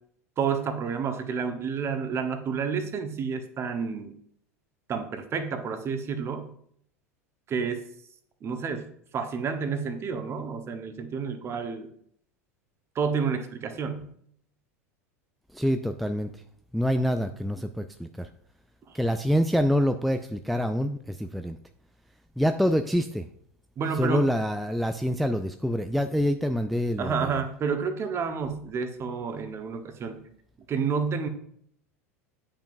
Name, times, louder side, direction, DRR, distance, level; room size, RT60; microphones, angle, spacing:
voice 1, 0.4-4.1 4.9-6.5 7.5-7.8 8.4-8.9 9.1-11.9 12.9-14.1 18.9-19.0 23.8-24.3 27.0-30.2 30.7-31.3, right 6 dB, 35° right, 7 dB, 1.0 m, -30 dB
voice 2, 15.5-16.4 16.7-18.3 18.9-21.6 22.4-23.3 24.0-27.3, equal, ahead, 7 dB, 0.3 m, -26 dB
8.6 x 5.4 x 2.6 m, 0.66 s
hypercardioid pair, 85°, 8 cm